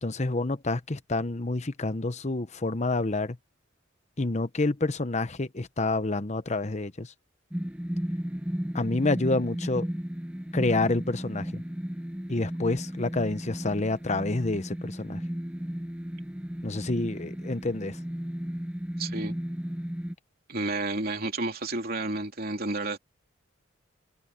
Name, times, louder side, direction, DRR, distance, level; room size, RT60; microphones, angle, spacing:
voice 1, 0.0-3.4 4.2-7.1 8.7-9.9 10.5-11.6 12.3-15.2 16.6-18.0, left 2 dB, 35° left, 1.0 m, -28 dB
sound 1, 7.5-20.1, equal, 5° right, 0.6 m, -34 dB
voice 2, 19.0-19.3 20.5-23.0, right 2 dB, 50° right, 3.4 m, -31 dB
head